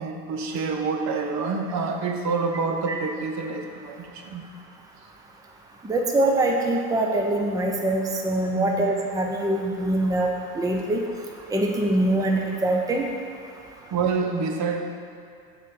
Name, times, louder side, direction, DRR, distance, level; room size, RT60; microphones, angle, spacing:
voice 1, 0.0-4.4 8.5-8.8 13.9-14.8, right 4 dB, 50° right, 4 dB, 0.8 m, -27 dB
voice 2, 5.8-10.3 10.6-11.0 11.5-13.0, right 1 dB, 10° right, 1 dB, 0.6 m, -23 dB
7.0 x 4.2 x 6.5 m, 2.4 s
supercardioid pair, 115°, 37 cm